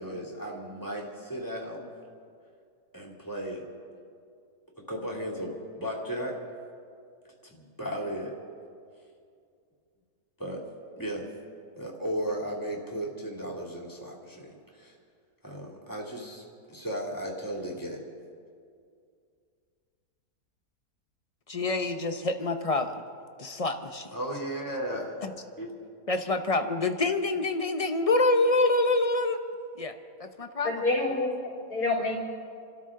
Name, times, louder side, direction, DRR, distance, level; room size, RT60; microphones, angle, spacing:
voice 1, 0.0-1.9 2.9-3.7 4.9-6.4 7.5-8.3 10.4-10.6 11.0-11.3 11.8-14.9 15.4-16.4 16.7-18.0 24.1-25.2 25.6-25.7, equal, 10° left, -2 dB, 2.6 m, -35 dB
voice 2, 21.5-23.0 23.4-24.1 25.2-25.3 26.1-29.4 29.8-29.9 30.2-30.8, left 2 dB, 50° left, 7 dB, 0.4 m, -26 dB
voice 3, 30.6-32.1, left 2 dB, 90° left, -4 dB, 3.4 m, -28 dB
28.5 x 13.0 x 3.7 m, 2.3 s
omnidirectional pair, 1.7 m